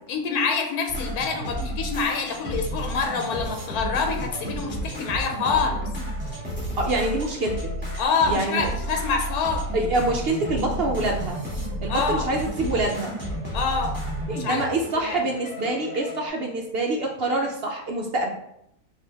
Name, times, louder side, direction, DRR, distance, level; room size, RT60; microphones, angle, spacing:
voice 1, 0.1-5.9 8.0-9.6 11.9-12.3 13.5-14.0 14.3-14.6 15.0-15.2, left 5 dB, 85° left, 4 dB, 1.1 m, -26 dB
sound 1, 0.9-16.3, equal, 10° right, 1.7 m, -32 dB
voice 2, 6.8-7.7 8.3-8.7 9.7-11.4 11.8-13.1 14.3-18.3, right 2 dB, 65° right, 1 dB, 0.6 m, -26 dB
5.9 x 2.7 x 3.3 m, 0.79 s
omnidirectional pair, 1.5 m